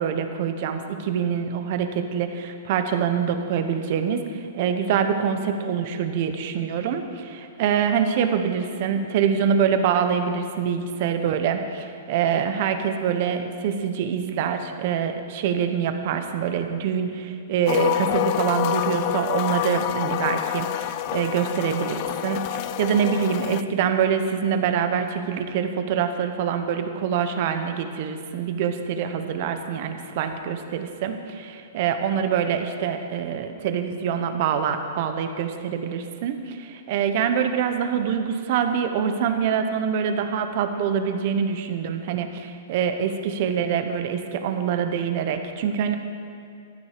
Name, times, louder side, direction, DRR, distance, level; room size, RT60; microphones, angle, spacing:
voice 1, 0.0-46.0, right 7 dB, 45° right, 7 dB, 1.1 m, -25 dB
sound 1, 17.7-23.6, left 12 dB, 35° left, 0.4 m, -27 dB
14.0 x 12.0 x 5.1 m, 2.4 s
hypercardioid pair, 165°, 0 cm